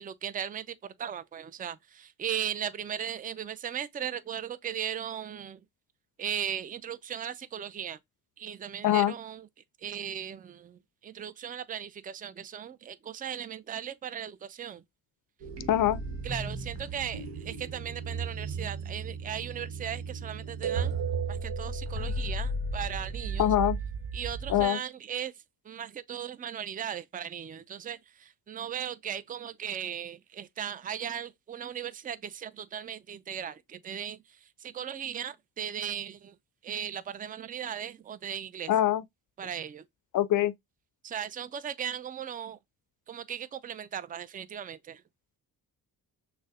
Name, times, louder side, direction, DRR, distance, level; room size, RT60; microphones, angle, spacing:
voice 1, 0.0-5.6 6.2-8.0 8.4-9.5 9.8-14.8 16.2-21.0 21.3-23.5 24.1-25.3 25.6-36.4 36.6-38.7 39.4-39.8 41.0-42.6 43.1-45.0, right 9 dB, 20° right, 0.4 m, -37 dB
voice 2, 8.8-9.1 15.7-16.0 23.4-23.8 24.5-24.8 38.7-39.0 40.1-40.5, left 12 dB, 50° left, 0.5 m, -23 dB
sound 1, 15.4-24.7, right 4 dB, 70° right, 1.1 m, -34 dB
6.2 x 2.2 x 2.3 m
supercardioid pair, 50°, 43 cm